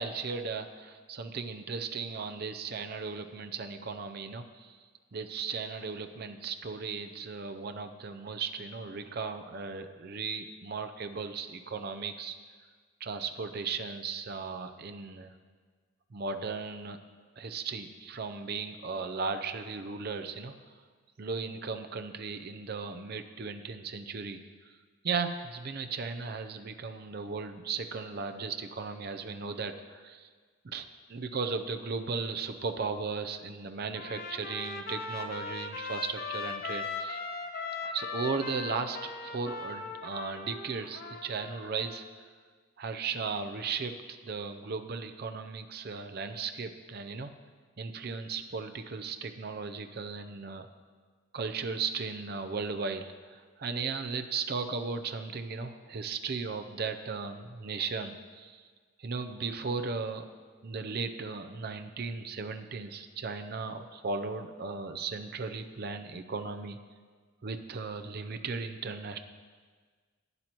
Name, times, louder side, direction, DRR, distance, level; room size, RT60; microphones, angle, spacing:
voice 1, 0.0-4.7 5.1-12.4 13.0-15.3 16.1-17.0 17.4-20.5 21.2-24.4 25.0-30.3 30.6-37.2 37.8-42.0 42.8-43.9 44.3-47.3 47.8-50.7 51.3-58.6 59.0-60.3 60.6-66.8 67.4-69.2, right 4 dB, 45° right, 8 dB, 0.5 m, -36 dB
Trumpet, 33.9-42.1, left 4 dB, 45° left, 0.6 m, -39 dB
12.0 x 9.2 x 2.9 m, 1.5 s
head